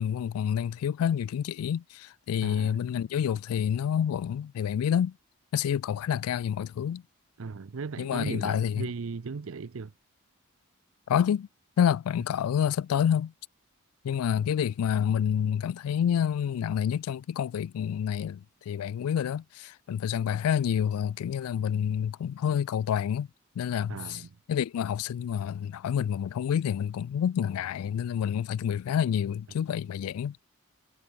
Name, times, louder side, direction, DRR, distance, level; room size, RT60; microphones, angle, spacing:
voice 1, 0.0-5.1 5.5-7.0 8.0-8.9 11.1-11.5 11.8-13.3 14.0-23.3 23.6-24.2 24.5-30.4, left 8 dB, 85° left, 0.3 m, -28 dB
voice 2, 2.4-2.8 7.4-9.9 23.9-24.4, right 4 dB, 65° right, 0.5 m, -37 dB
head